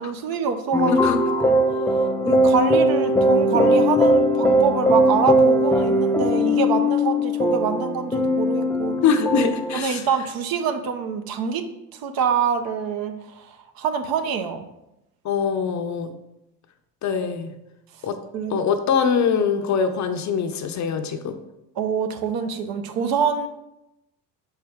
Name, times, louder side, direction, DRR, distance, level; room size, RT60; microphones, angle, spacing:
voice 1, 0.0-1.6 2.2-9.0 9.7-14.7 18.3-18.6 21.8-23.5, right 6 dB, 50° right, 7 dB, 0.8 m, -25 dB
sound 1, 0.7-9.8, equal, 5° left, 0.5 m, -19 dB
voice 2, 0.8-1.2 9.0-10.0 15.2-16.1 17.0-17.5 18.0-18.2 18.5-21.4, left 6 dB, 40° left, 8 dB, 0.7 m, -23 dB
6.1 x 4.5 x 3.6 m, 0.89 s
hypercardioid pair, 80°, 46 cm